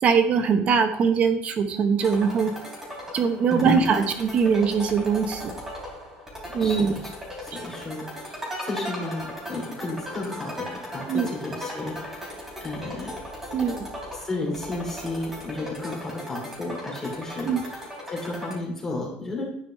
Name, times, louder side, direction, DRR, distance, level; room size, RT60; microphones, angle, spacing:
voice 1, 0.0-2.5 3.1-5.5 6.5-6.9 11.1-11.3 13.5-13.8 17.4-17.6, right 6 dB, 35° right, 8 dB, 1.1 m, -22 dB
sound 1, 2.0-18.6, equal, 10° right, 3.2 m, -37 dB
voice 2, 3.5-4.1 6.6-7.0 7.4-13.1 13.6-19.5, left 2 dB, 15° left, -2 dB, 3.1 m, -33 dB
11.0 x 9.0 x 3.2 m, 0.71 s
cardioid pair, 170°, 4 cm